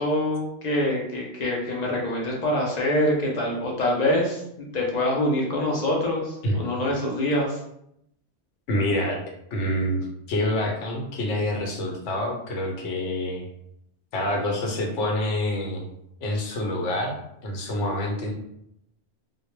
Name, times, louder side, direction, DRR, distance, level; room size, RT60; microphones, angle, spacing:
voice 1, 0.0-7.6, left 1 dB, 60° left, -2 dB, 0.4 m, -25 dB
voice 2, 8.7-9.2 9.5-10.0 10.3-13.5 14.1-15.9 16.2-17.2 17.4-18.3, left 1 dB, 90° left, 1 dB, 0.9 m, -26 dB
2.1 x 2.0 x 3.0 m, 0.77 s
omnidirectional pair, 1.2 m